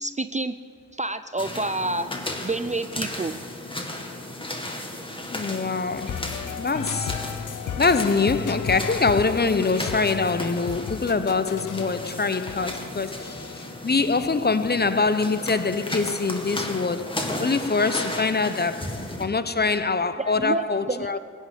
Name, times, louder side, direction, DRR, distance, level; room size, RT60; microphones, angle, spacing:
voice 1, 0.0-0.6 0.9-2.1 2.4-3.4 20.2-21.2, right 2 dB, 20° right, 0.4 m, -28 dB
sound 1, 1.4-19.2, left 1 dB, 15° left, 2.1 m, -35 dB
voice 2, 5.3-7.4 7.8-21.2, left 4 dB, 30° left, 0.7 m, -24 dB
sound 2, 6.1-13.9, left 8 dB, 70° left, 0.7 m, -35 dB
15.5 x 6.5 x 9.9 m
cardioid pair, 50°, 32 cm